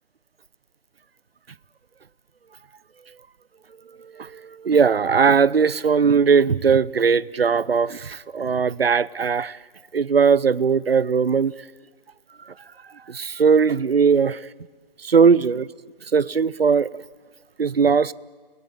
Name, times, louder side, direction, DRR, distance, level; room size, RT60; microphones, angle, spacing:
voice 1, 4.0-9.6 9.9-11.5 12.5-12.6 13.1-14.5 15.0-15.7 16.1-16.9 17.6-18.1, right 6 dB, 80° right, 0.8 m, -19 dB
29.5 x 21.0 x 8.8 m
figure-of-eight pair, 130°, 29 cm